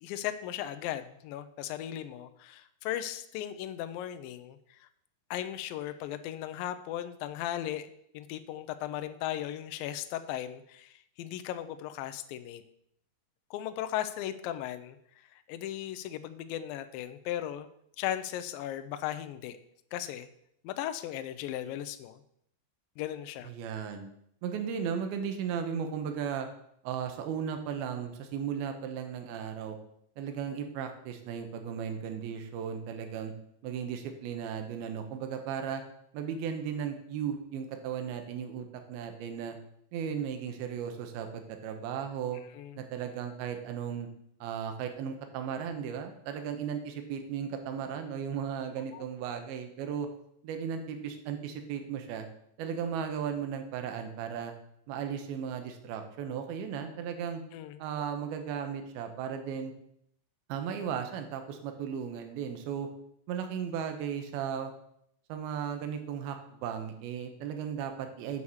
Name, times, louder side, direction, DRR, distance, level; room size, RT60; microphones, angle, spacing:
voice 1, 0.0-4.9 5.3-12.6 13.5-15.0 15.3-17.7 18.0-19.6 19.9-20.3 20.6-22.2 23.0-23.5 42.5-42.8 48.9-49.0 57.5-57.8, left 12 dB, 85° left, 10 dB, 2.1 m, -37 dB
voice 2, 23.4-24.1 24.4-26.5 26.8-29.8 30.2-33.3 33.6-35.8 36.1-39.6 39.9-42.4 42.8-44.1 44.4-50.1 50.4-52.3 52.6-54.5 54.9-57.4 57.8-59.7 60.5-62.9 63.3-64.7 65.3-68.4, right 7 dB, 75° right, 6 dB, 2.8 m, -36 dB
8.4 x 4.8 x 7.0 m, 0.72 s
omnidirectional pair, 4.6 m